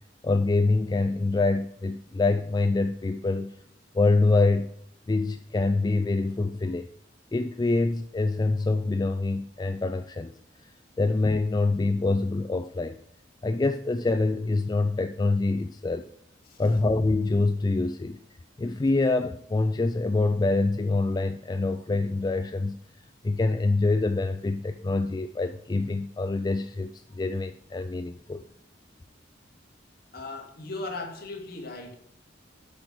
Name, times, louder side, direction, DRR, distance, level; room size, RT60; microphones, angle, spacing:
voice 1, 0.2-3.6 3.9-4.7 5.1-6.9 7.3-10.4 10.6-10.7 11.0-13.0 13.4-16.1 16.6-18.2 18.6-22.8 23.2-28.4, left 3 dB, 20° left, 0.3 m, -25 dB
voice 2, 30.1-32.0, left 2 dB, 55° left, 2.0 m, -37 dB
8.5 x 6.2 x 6.1 m
head